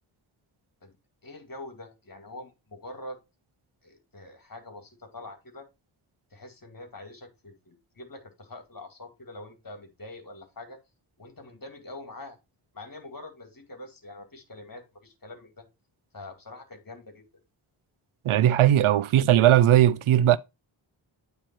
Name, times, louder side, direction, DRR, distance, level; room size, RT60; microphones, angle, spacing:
voice 1, 1.2-3.2 3.8-5.7 6.3-10.8 11.2-12.4 12.7-15.7 16.1-17.2, left 2 dB, 40° left, 2.1 m, -44 dB
voice 2, 18.3-20.4, right 12 dB, 75° right, 0.6 m, -18 dB
8.9 x 3.4 x 4.4 m
cardioid pair, 45°, 50 cm